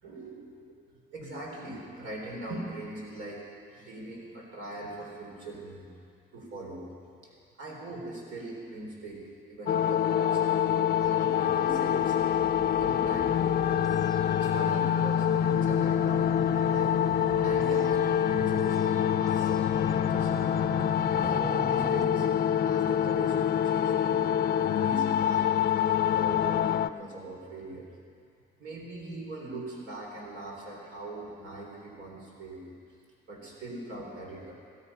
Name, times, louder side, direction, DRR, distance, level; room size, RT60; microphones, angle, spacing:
voice 1, 0.0-0.7 1.1-3.4 3.7-5.9 6.3-6.8 7.6-9.2 9.5-12.2 12.8-13.6 14.3-16.3 16.7-17.0 17.4-20.5 21.1-24.2 24.5-25.5 26.0-27.9 28.6-32.6 33.3-34.5, right 2 dB, 85° right, -2 dB, 4.1 m, -41 dB
sound 1, 9.7-26.9, left 9 dB, 50° left, 0.4 m, -26 dB
sound 2, 11.0-22.0, right 3 dB, 15° right, 0.7 m, -44 dB
16.5 x 13.5 x 5.7 m, 2.3 s
cardioid pair, 90°, 20 cm